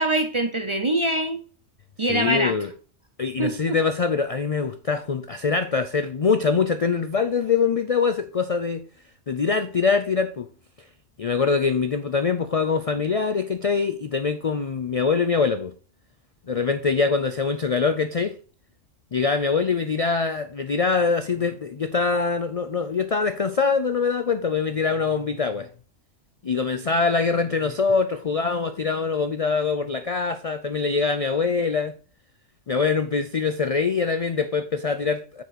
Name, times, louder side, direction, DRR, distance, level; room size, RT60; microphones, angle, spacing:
voice 1, 0.0-1.4 2.0-2.6 3.4-3.8, right 1 dB, 35° right, 0.5 m, -24 dB
voice 2, 2.1-2.7 3.2-8.9 9.3-10.5 11.2-15.7 16.5-18.3 19.1-25.7 26.4-31.9 32.7-35.4, left 5 dB, 65° left, 0.3 m, -23 dB
9.3 x 4.8 x 4.1 m
omnidirectional pair, 1.3 m